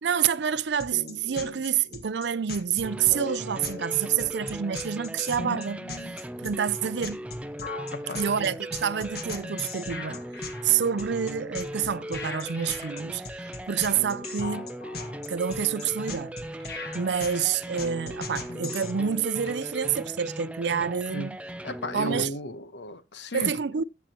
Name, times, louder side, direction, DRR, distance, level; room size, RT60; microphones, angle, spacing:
voice 1, 0.0-5.8 6.4-7.3 8.2-14.7 14.9-16.4 16.9-21.4 21.9-22.3 23.3-23.8, right 8 dB, 75° right, 0.5 m, -28 dB
sound 1, 0.8-18.9, left 3 dB, 60° left, 1.7 m, -39 dB
sound 2, 2.8-22.3, equal, 5° right, 0.5 m, -38 dB
voice 2, 7.9-8.2 21.1-21.3 21.6-23.5, left 1 dB, 75° left, 1.1 m, -34 dB
sound 3, 12.2-22.1, left 3 dB, 40° left, 4.5 m, -55 dB
14.5 x 7.3 x 3.0 m
head